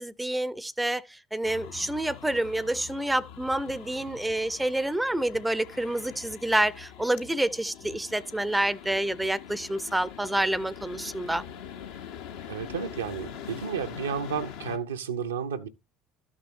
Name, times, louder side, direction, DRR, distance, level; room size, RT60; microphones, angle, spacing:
voice 1, 0.0-11.4, right 1 dB, 5° right, 0.5 m, -28 dB
sound 1, 1.4-14.8, left 8 dB, 65° left, 0.8 m, -44 dB
voice 2, 12.5-15.7, right 7 dB, 75° right, 0.6 m, -32 dB
13.0 x 6.2 x 2.7 m
figure-of-eight pair, 60°, 0 cm